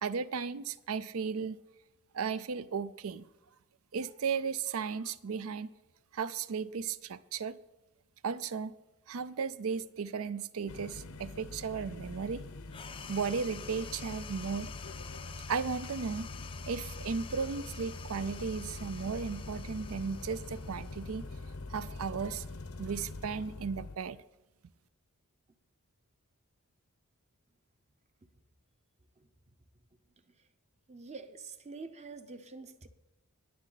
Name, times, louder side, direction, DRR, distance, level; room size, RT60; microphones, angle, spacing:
voice 1, 0.0-1.6 2.1-3.3 3.9-5.7 6.1-7.6 8.2-8.7 9.1-12.4 13.1-14.7 15.5-16.3 16.7-21.2 21.7-22.4 22.8-24.2, right 5 dB, 70° right, 0.5 m, -35 dB
sound 1, 10.7-24.0, left 2 dB, 85° left, 0.9 m, -44 dB
sound 2, 12.7-21.6, left 7 dB, 25° left, 0.4 m, -49 dB
voice 2, 29.2-29.6 30.2-30.5 30.9-32.9, right 4 dB, 30° right, 0.8 m, -47 dB
19.5 x 7.4 x 4.0 m
head